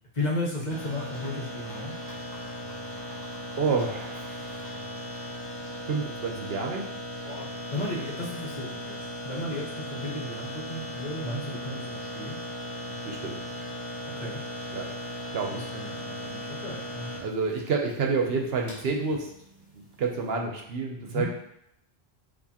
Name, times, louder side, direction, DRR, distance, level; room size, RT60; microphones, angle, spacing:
voice 1, 0.1-2.0 7.2-12.4 14.2-14.4 15.5-17.1 21.1-21.3, left 1 dB, 40° left, -3 dB, 1.1 m, -34 dB
sound 1, 0.7-20.3, left 1 dB, 35° right, 1.8 m, -38 dB
voice 2, 3.6-4.6 5.9-6.8 11.2-11.4 13.0-13.4 14.7-14.9 15.3-15.6 17.2-19.3 20.0-21.3, right 4 dB, 65° right, 1 dB, 0.9 m, -29 dB
6.8 x 2.5 x 2.8 m, 0.76 s
omnidirectional pair, 1.1 m